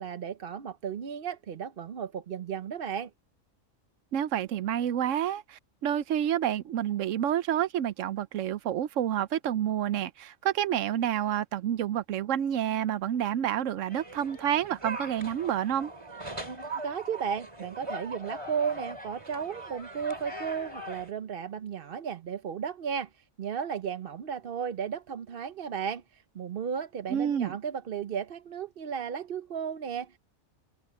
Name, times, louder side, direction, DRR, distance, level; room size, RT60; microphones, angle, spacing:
voice 1, 0.0-3.1 16.4-30.2, right 7 dB, 55° right, 0.9 m, -34 dB
voice 2, 4.1-15.9 27.1-27.6, right 10 dB, 90° right, 1.0 m, -29 dB
sound 1, 13.9-21.1, right 1 dB, 25° right, 3.4 m, -41 dB
open air
omnidirectional pair, 1.3 m